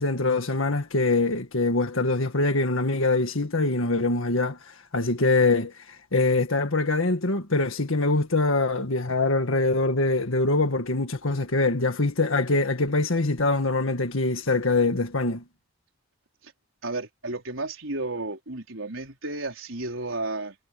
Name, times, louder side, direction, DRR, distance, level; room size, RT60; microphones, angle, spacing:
voice 1, 0.0-15.4, left 2 dB, 80° left, 1.8 m, -24 dB
voice 2, 16.8-20.6, right 2 dB, 75° right, 4.6 m, -32 dB
head